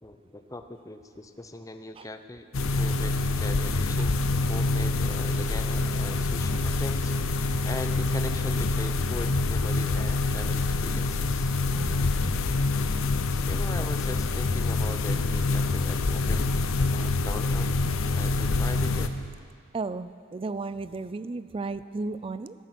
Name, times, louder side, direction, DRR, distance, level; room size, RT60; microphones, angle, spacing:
voice 1, 0.0-2.5 2.8-4.2 4.5-11.5 12.9-16.6 16.9-17.7 18.0-19.1, left 1 dB, 15° left, 8 dB, 0.6 m, -40 dB
sound 1, 2.5-19.1, left 3 dB, 80° left, 0.7 m, -26 dB
voice 2, 11.7-12.1 13.8-13.9 19.7-22.5, right 3 dB, 25° right, 14 dB, 0.3 m, -34 dB
16.5 x 9.4 x 5.9 m, 2.1 s
head